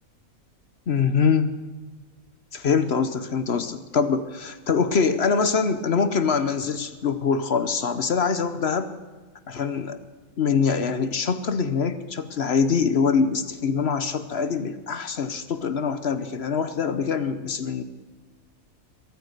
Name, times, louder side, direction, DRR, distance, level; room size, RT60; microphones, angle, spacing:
voice 1, 0.9-1.5 2.5-8.9 9.5-10.0 10.4-17.8, left 5 dB, 50° left, 11 dB, 1.0 m, -24 dB
22.5 x 9.2 x 6.6 m, 1.4 s
omnidirectional pair, 1.5 m